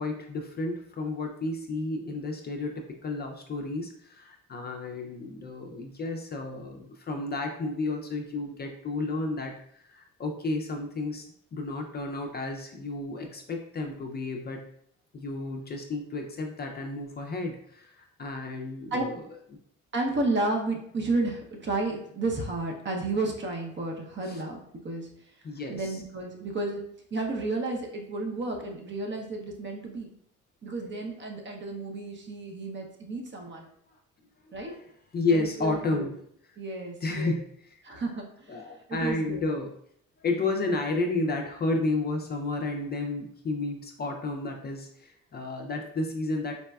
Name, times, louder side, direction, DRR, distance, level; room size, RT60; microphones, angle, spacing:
voice 1, 0.0-11.2 11.5-14.6 15.1-19.3 24.2-24.4 25.4-26.0 34.6-36.2 37.0-37.4 37.7-37.8 38.5-39.7 40.2-46.5, left 2 dB, 35° left, 2 dB, 0.4 m, -32 dB
voice 2, 19.9-25.1 25.7-26.8 27.1-30.1 30.6-33.7 34.5-34.8 35.3-36.1 36.6-37.4 37.8-39.4, right 2 dB, 40° right, 2 dB, 0.7 m, -32 dB
4.0 x 2.2 x 2.3 m, 0.68 s
cardioid pair, 90°, 30 cm